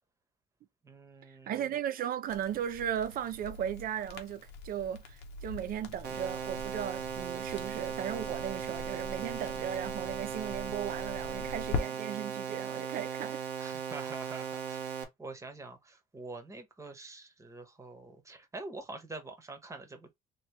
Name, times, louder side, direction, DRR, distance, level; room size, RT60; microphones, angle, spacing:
voice 1, 0.8-1.7 13.6-20.1, right 3 dB, 15° right, 1.1 m, -46 dB
voice 2, 1.5-13.5, right 9 dB, 60° right, 0.6 m, -36 dB
Crackle, 2.3-11.8, left 4 dB, 90° left, 0.9 m, -43 dB
sound 1, 6.0-15.0, right 7 dB, 90° right, 1.1 m, -38 dB
3.0 x 2.9 x 3.2 m
cardioid pair, 110°, 17 cm